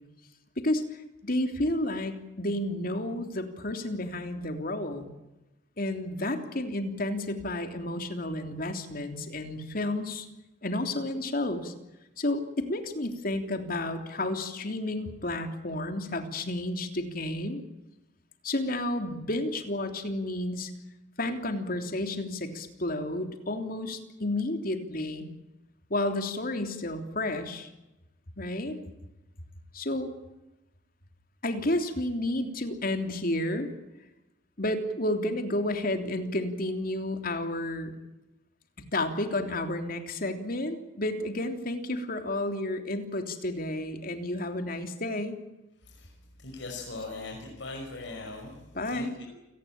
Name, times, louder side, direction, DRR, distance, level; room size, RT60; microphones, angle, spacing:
voice 1, 0.6-5.1 5.8-10.3 10.6-11.7 12.2-17.6 18.4-20.7 21.2-25.3 25.9-27.7 28.4-28.8 29.7-30.1 31.4-33.7 34.6-37.9 38.9-45.4 48.8-49.1, left 1 dB, 50° left, 6 dB, 3.3 m, -31 dB
voice 2, 45.8-46.1 46.4-49.4, left 2 dB, 85° left, 1 dB, 5.4 m, -40 dB
29.0 x 18.5 x 8.9 m, 0.98 s
head